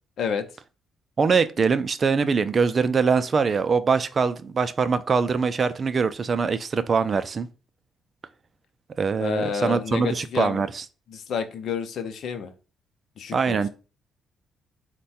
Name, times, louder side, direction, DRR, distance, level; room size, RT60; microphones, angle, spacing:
voice 1, 1.2-7.5 9.0-10.8 13.3-13.7, right 5 dB, 40° right, 0.4 m, -23 dB
voice 2, 9.2-10.6 11.1-12.5 13.2-13.6, left 6 dB, 70° left, 0.6 m, -29 dB
4.5 x 2.2 x 4.2 m
cardioid pair, 90°, 0 cm